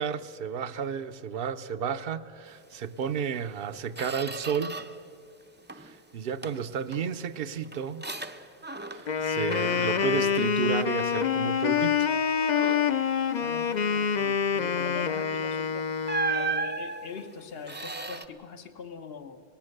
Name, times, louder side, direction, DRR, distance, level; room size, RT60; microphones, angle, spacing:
voice 1, 0.0-4.8 5.8-8.0 8.9-12.1, right 7 dB, 65° right, 0.9 m, -32 dB
Squeak, 3.1-3.3 3.7-5.1 5.4-6.0 6.4-9.2 9.5-11.3 11.8-12.0 12.4-13.0 15.2-15.3 16.0-18.3, right 4 dB, 15° right, 0.5 m, -36 dB
Wind instrument woodwind instrument, 9.0-16.7, left 7 dB, 50° left, 0.7 m, -26 dB
voice 2, 13.4-15.9 16.3-19.4, left 5 dB, 65° left, 1.3 m, -42 dB
24.5 x 19.0 x 6.6 m
omnidirectional pair, 1.1 m